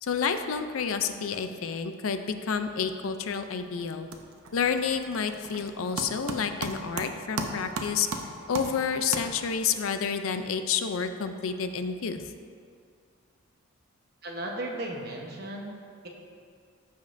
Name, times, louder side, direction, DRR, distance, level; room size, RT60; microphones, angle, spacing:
voice 1, 0.0-4.1 4.5-8.1 8.5-12.3, left 6 dB, 75° left, 9 dB, 0.5 m, -29 dB
sound 1, 3.2-3.6 3.9-9.7, right 3 dB, 85° right, 0.7 m, -37 dB
voice 2, 14.2-16.1, right 1 dB, 50° right, 0 dB, 1.0 m, -36 dB
14.0 x 5.2 x 2.6 m, 2.3 s
head